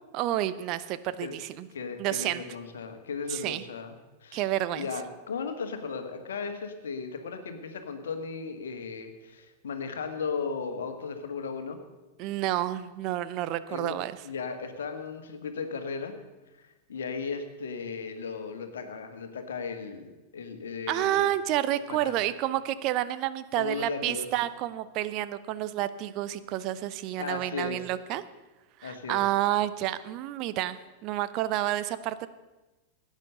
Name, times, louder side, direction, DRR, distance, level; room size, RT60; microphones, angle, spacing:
voice 1, 0.1-1.7 2.0-2.4 3.3-3.6 4.3-4.9 12.2-14.1 20.9-28.2 28.8-32.3, right 13 dB, 40° right, 14 dB, 0.7 m, -29 dB
voice 2, 1.7-4.4 4.7-11.8 13.7-14.0 14.2-16.1 16.6-21.3 21.9-22.2 23.5-24.3 27.2-27.9 28.8-29.2, left 5 dB, 65° left, 7 dB, 1.8 m, -36 dB
16.5 x 9.2 x 6.8 m, 1.1 s
figure-of-eight pair, 90°, 0 cm